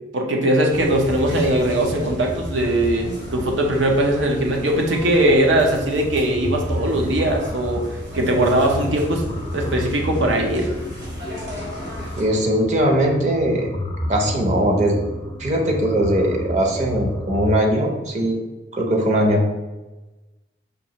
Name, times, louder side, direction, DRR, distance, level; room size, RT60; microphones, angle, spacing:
voice 1, 0.1-7.8 8.1-9.2 9.5-10.7, right 1 dB, 90° right, 1 dB, 0.7 m, -20 dB
sound 1, 0.7-12.2, equal, 65° right, 1.3 m, -34 dB
sound 2, 0.8-17.5, equal, 25° left, 0.3 m, -32 dB
voice 2, 12.2-13.7 14.1-15.0 15.4-18.5 18.7-19.4, right 1 dB, 40° right, 1 dB, 0.6 m, -20 dB
5.2 x 2.5 x 2.9 m, 1.1 s
head